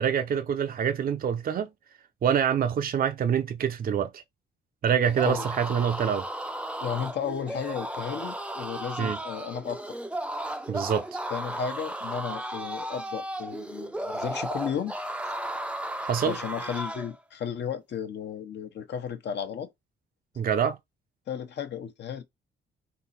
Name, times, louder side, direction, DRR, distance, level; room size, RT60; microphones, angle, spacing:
voice 1, 0.0-1.7 2.2-4.2 4.8-6.3 9.0-9.2 10.7-11.1 16.1-16.4 20.4-20.8, right 8 dB, 50° right, 0.6 m, -26 dB
sound 1, 5.0-17.1, right 1 dB, 5° right, 0.6 m, -35 dB
voice 2, 6.8-10.0 11.3-14.9 16.2-19.7 21.3-22.2, left 8 dB, 60° left, 1.0 m, -34 dB
3.8 x 2.9 x 4.2 m
cardioid pair, 90°, 20 cm